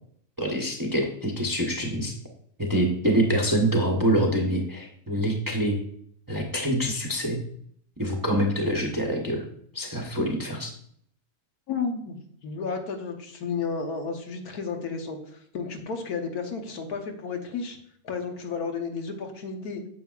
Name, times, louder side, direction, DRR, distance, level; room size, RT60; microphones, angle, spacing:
voice 1, 0.4-2.1 2.6-5.8 6.3-7.4 8.0-9.5 9.7-10.7, right 1 dB, 15° right, 0 dB, 0.8 m, -25 dB
voice 2, 11.7-12.2 12.4-17.8 18.0-19.8, left 5 dB, 75° left, 4 dB, 1.5 m, -32 dB
9.3 x 7.1 x 2.4 m, 0.66 s
omnidirectional pair, 1.6 m